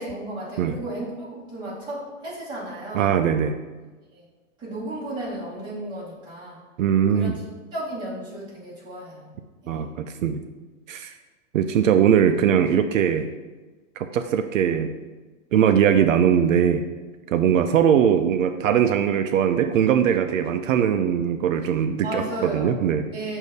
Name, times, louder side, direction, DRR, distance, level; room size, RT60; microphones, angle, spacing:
voice 1, 0.0-3.1 4.1-4.2 4.6-6.6 7.1-7.3 7.7-9.3 9.6-9.8 22.0-22.7 23.1-23.4, right 1 dB, 10° right, -8 dB, 1.5 m, -34 dB
voice 2, 2.9-3.5 6.8-7.4 9.7-10.4 10.9-11.1 11.5-13.3 14.0-14.9 15.5-16.8 17.3-23.0, right 8 dB, 75° right, 8 dB, 0.5 m, -20 dB
6.5 x 2.7 x 5.2 m, 1.3 s
hypercardioid pair, 160°, 39 cm